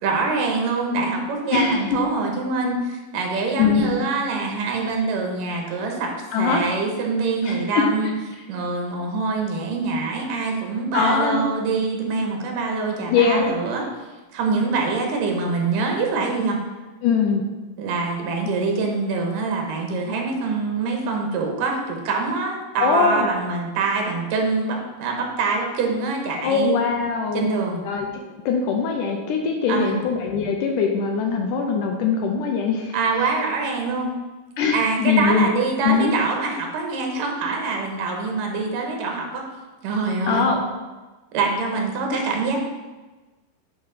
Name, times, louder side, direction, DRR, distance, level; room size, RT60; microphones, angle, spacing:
voice 1, 0.0-8.1 8.5-13.9 14.3-16.6 17.8-26.7 27.3-27.8 29.7-30.0 32.9-34.1 34.7-39.4 39.8-40.5 41.3-42.6, right 4 dB, 80° right, 1 dB, 2.7 m, -24 dB
voice 2, 1.5-2.0 3.6-3.9 6.3-6.6 7.4-7.9 10.9-11.4 13.1-13.5 17.0-17.4 22.8-23.3 26.4-27.5 27.8-28.1 28.5-33.0 34.6-35.5 35.8-36.1 40.3-40.6 42.1-42.2, left 5 dB, 80° left, 2 dB, 2.1 m, -21 dB
8.8 x 4.4 x 4.0 m, 1.2 s
omnidirectional pair, 3.9 m